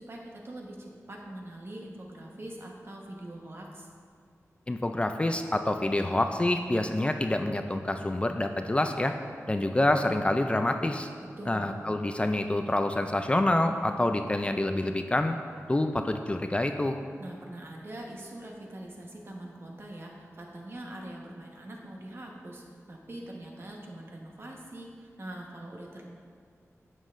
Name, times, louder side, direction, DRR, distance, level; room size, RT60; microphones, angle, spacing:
voice 1, 0.0-3.9 11.4-11.8 17.2-26.0, right 1 dB, 50° right, -1 dB, 1.2 m, -43 dB
voice 2, 4.7-9.1 9.5-11.1 11.5-15.4 15.7-17.0, left 1 dB, 20° left, 6 dB, 0.3 m, -27 dB
11.0 x 7.4 x 2.5 m, 2.2 s
wide cardioid pair, 100°, 5 cm